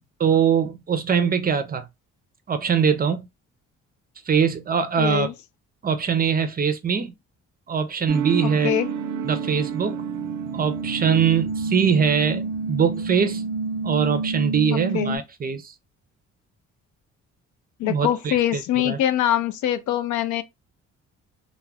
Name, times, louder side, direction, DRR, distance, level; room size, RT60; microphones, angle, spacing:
voice 1, 0.2-1.9 2.5-3.3 4.3-5.3 5.8-7.1 7.7-8.7 9.2-10.1 10.5-13.4 13.8-15.7 17.8-19.0, right 7 dB, 30° right, 0.4 m, -22 dB
voice 2, 5.0-5.3 8.4-8.9 14.7-15.2 17.8-20.4, left 12 dB, 75° left, 0.5 m, -24 dB
sound 1, 8.1-15.2, right 5 dB, 85° right, 0.5 m, -28 dB
2.3 x 2.1 x 3.3 m
cardioid pair, 90°, 30 cm